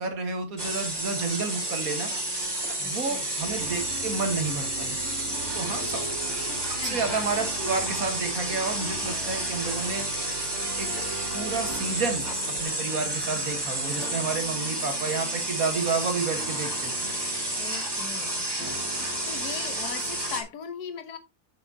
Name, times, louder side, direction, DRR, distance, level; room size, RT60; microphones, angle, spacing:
voice 1, 0.0-2.1 2.8-5.0 5.6-6.0 6.7-10.1 10.8-10.9 11.3-17.1, right 4 dB, 65° right, 1.9 m, -30 dB
sound 1, 0.6-20.4, right 1 dB, 15° right, 1.8 m, -31 dB
voice 2, 2.8-3.3 5.7-6.2 6.8-7.1 17.6-21.2, left 7 dB, 80° left, 1.5 m, -40 dB
sound 2, 3.4-20.2, right 3 dB, 50° right, 1.9 m, -41 dB
7.7 x 7.0 x 2.8 m
omnidirectional pair, 1.6 m